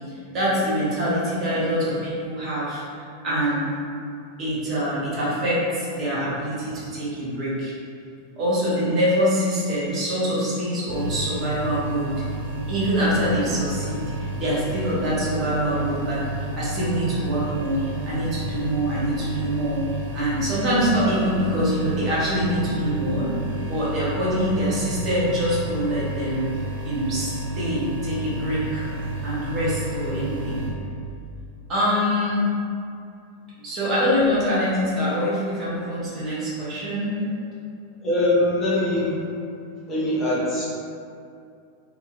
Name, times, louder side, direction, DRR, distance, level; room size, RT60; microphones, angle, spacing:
voice 1, 0.0-2.8 3.2-3.7 4.4-7.7 8.4-12.2 12.7-19.8 20.1-23.3 23.7-26.5 26.8-28.9 29.2-30.7 31.7-32.5 33.6-37.3, equal, 35° right, -8 dB, 0.8 m, -24 dB
sound 1, 10.9-30.7, right 1 dB, 65° right, 0.6 m, -31 dB
voice 2, 38.0-39.2 39.9-40.7, left 1 dB, 20° left, -8 dB, 0.6 m, -22 dB
2.6 x 2.1 x 2.4 m, 2.4 s
figure-of-eight pair, 90°, 0 cm